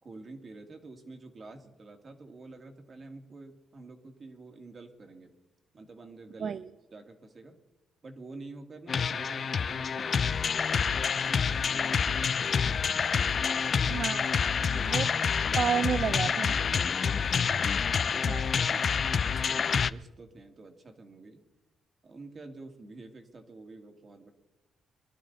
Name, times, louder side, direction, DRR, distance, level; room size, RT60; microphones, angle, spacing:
voice 1, 0.0-5.3 5.7-6.6 6.9-7.6 8.0-12.3 12.7-14.0 14.4-15.1 16.6-17.6 18.3-21.4 22.0-24.3, right 3 dB, 40° right, 5 dB, 2.4 m, -49 dB
sound 1, 8.9-19.9, left 6 dB, 50° left, 0.5 m, -27 dB
voice 2, 13.9-14.3 14.7-15.1 15.6-16.5 18.2-18.5, right 7 dB, 55° right, 14 dB, 0.5 m, -31 dB
23.5 x 12.0 x 4.1 m, 1.0 s
cardioid pair, 85°, 0 cm